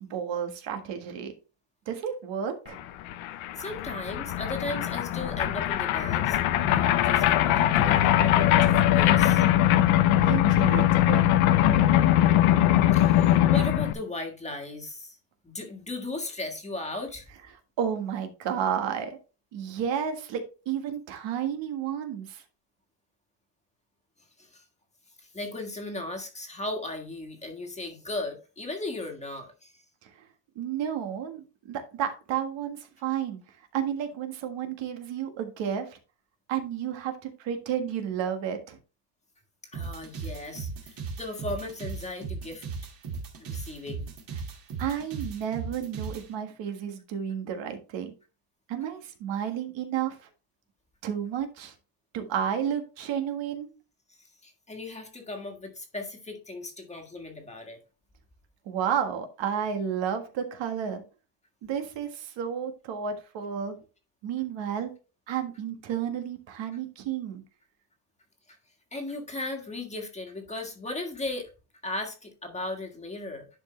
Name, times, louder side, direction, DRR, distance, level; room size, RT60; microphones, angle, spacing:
voice 1, 0.0-1.3 1.8-2.8 10.2-11.4 17.8-19.2 19.5-22.4 30.0-30.2 30.5-33.4 33.7-36.0 36.5-38.8 44.8-48.1 48.7-50.2 51.0-51.7 52.1-53.7 58.6-61.0 61.6-63.8 64.2-64.9 65.3-67.4, right 8 dB, 65° right, 6 dB, 1.7 m, -31 dB
sound 1, 2.8-2.9 3.1-13.9, left 12 dB, 90° left, 1.0 m, -21 dB
voice 2, 3.6-6.4 6.7-9.4 12.9-15.2 15.4-17.3 24.4-24.6 25.2-29.8 39.7-42.6 43.4-44.1 54.4-57.8 68.5-68.6 68.9-71.5 71.8-73.5, left 2 dB, 15° left, 3 dB, 1.6 m, -36 dB
sound 2, 39.7-46.2, right 5 dB, 45° right, 2.3 m, -37 dB
11.0 x 4.9 x 3.2 m, 0.33 s
cardioid pair, 150°, 47 cm